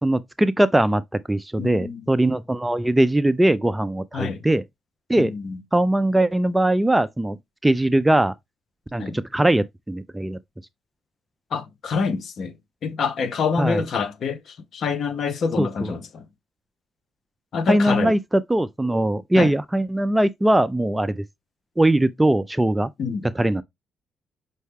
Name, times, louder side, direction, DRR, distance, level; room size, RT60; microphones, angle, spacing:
voice 1, 0.0-1.0 1.3-4.6 5.1-5.3 5.7-7.4 7.6-8.3 8.9-10.4 13.6-13.8 15.6-15.9 17.7-21.2 21.8-22.9 23.4-23.6, right 1 dB, 10° right, 0.3 m, -20 dB
voice 2, 1.6-2.0 4.1-4.4 5.2-5.6 9.0-9.2 11.5-12.5 12.8-16.3 17.5-18.2 19.4-19.5 23.0-23.3, left 5 dB, 60° left, 0.7 m, -26 dB
5.5 x 2.1 x 3.3 m
cardioid pair, 90°, 0 cm